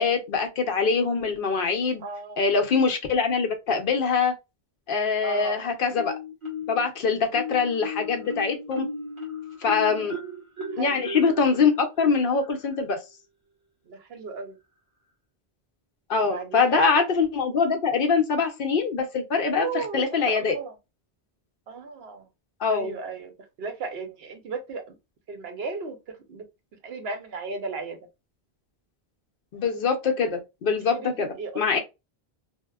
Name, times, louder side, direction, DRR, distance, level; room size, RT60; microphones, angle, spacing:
voice 1, 0.0-2.0 2.4-4.3 4.9-6.1 6.7-8.9 9.6-10.1 10.8-13.0 16.1-20.5 22.6-23.0 29.5-31.3 31.5-31.8, left 5 dB, 65° left, 0.7 m, -23 dB
voice 2, 2.0-2.5 5.2-5.6 9.8-10.1 10.7-11.0 13.9-14.6 16.2-16.8 19.5-20.7 21.7-22.3 22.7-24.8 25.3-26.0 26.3-26.4 26.8-28.0 30.7-31.8, right 4 dB, 75° right, 0.9 m, -35 dB
Marimba xylophone, 5.9-6.9 7.3-12.8, left 2 dB, 30° right, 1.2 m, -36 dB
2.8 x 2.0 x 2.2 m
omnidirectional pair, 1.0 m